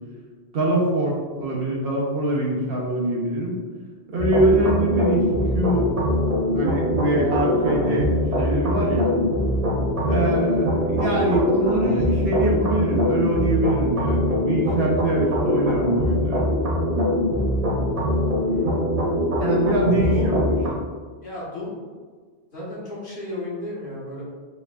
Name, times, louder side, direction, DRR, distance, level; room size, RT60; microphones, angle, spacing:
voice 1, 0.5-3.6 4.1-5.2 5.5-5.9 6.5-9.1 10.0-16.5 19.4-20.6, right 1 dB, 65° right, -2 dB, 1.0 m, -23 dB
sound 1, 4.2-20.7, left 1 dB, 40° right, 0.8 m, -22 dB
voice 2, 18.5-18.8 20.0-20.3 21.2-21.8 22.5-24.2, left 1 dB, 55° left, -7 dB, 1.4 m, -34 dB
4.5 x 3.5 x 2.3 m, 1.5 s
omnidirectional pair, 1.1 m